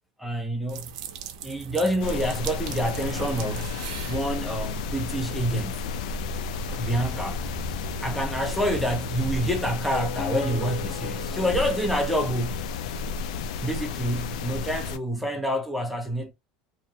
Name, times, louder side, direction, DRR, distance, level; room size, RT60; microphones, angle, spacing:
voice 1, 0.2-0.9 1.4-3.7 4.0-5.8 6.8-7.4 8.0-12.6 13.6-16.3, equal, ahead, 0.4 m, -27 dB
sound 1, 0.7-9.7, right 6 dB, 85° right, 0.5 m, -40 dB
sound 2, 2.0-15.0, left 4 dB, 85° left, 0.3 m, -32 dB
sound 3, 9.7-12.9, left 4 dB, 45° left, 1.0 m, -38 dB
2.8 x 2.0 x 2.6 m
supercardioid pair, 140°, 4 cm